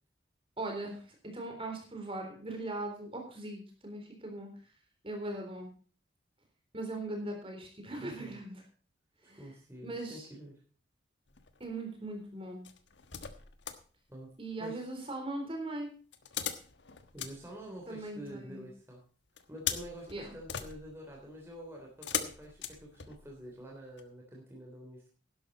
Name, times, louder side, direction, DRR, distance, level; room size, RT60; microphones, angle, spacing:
voice 1, 0.6-4.5 5.0-5.7 6.7-8.6 9.3-9.4 9.8-10.3 11.6-12.7 14.4-15.9 17.9-18.6 20.1-20.3, right 2 dB, 30° right, 3 dB, 3.7 m, -39 dB
voice 2, 8.0-8.4 9.3-10.6 14.1-14.3 14.6-14.8 17.1-19.0 19.5-25.1, equal, 15° right, -2 dB, 3.3 m, -47 dB
sound 1, 11.3-11.8 12.6-13.9 16.1-18.3 19.4-23.5 24.0-24.1, left 8 dB, 70° left, 1.3 m, -40 dB
12.0 x 11.5 x 4.1 m, 0.40 s
head